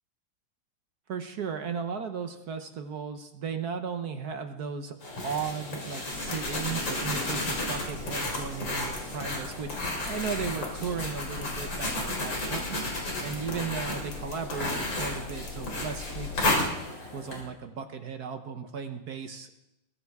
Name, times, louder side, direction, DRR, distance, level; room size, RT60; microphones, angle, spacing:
voice 1, 1.1-4.9 5.2-9.8 10.0-12.8 13.2-16.7 17.1-19.5, right 6 dB, 60° right, 7 dB, 1.3 m, -35 dB
sound 1, 5.0-17.4, left 1 dB, 65° left, 4.2 m, -33 dB
sound 2, 6.1-16.5, left 5 dB, 80° left, 2.7 m, -42 dB
21.5 x 14.0 x 3.6 m, 0.88 s
omnidirectional pair, 2.2 m